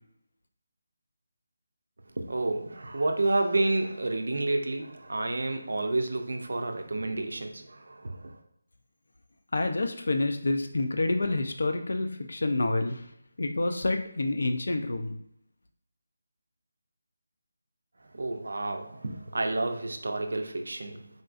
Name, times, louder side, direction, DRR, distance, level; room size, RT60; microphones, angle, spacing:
voice 1, 2.2-8.4 18.1-21.1, right 2 dB, 65° right, 0.4 m, -30 dB
voice 2, 9.5-13.0 13.4-15.1, left 2 dB, 60° left, 0.4 m, -28 dB
3.7 x 2.5 x 2.4 m
figure-of-eight pair, 180°, 0 cm